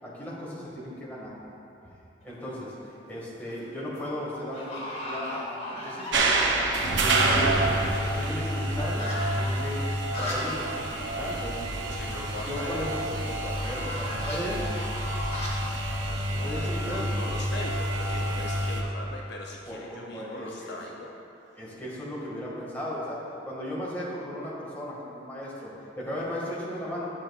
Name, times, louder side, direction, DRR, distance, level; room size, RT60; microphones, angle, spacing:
voice 1, 0.0-1.4 2.2-2.7 3.1-6.1 6.4-7.5 8.0-9.1 9.3-9.8 10.2-11.6 12.5-14.6 16.3-17.0 19.7-20.8 21.6-23.2 23.4-27.1, equal, 10° left, -7 dB, 1.8 m, -36 dB
sound 1, 2.2-2.7 3.2-3.7 3.9-4.0 4.5-6.7 7.0-7.1 7.3-10.7 11.0-11.1 11.4-11.5 13.4-17.2, left 1 dB, 35° left, 1.6 m, -38 dB
sound 2, 6.1-18.8, right 1 dB, 75° right, 0.7 m, -28 dB
voice 2, 11.7-12.9 16.0-21.1, left 2 dB, 60° left, 0 dB, 0.5 m, -40 dB
11.0 x 7.4 x 2.4 m, 2.8 s
head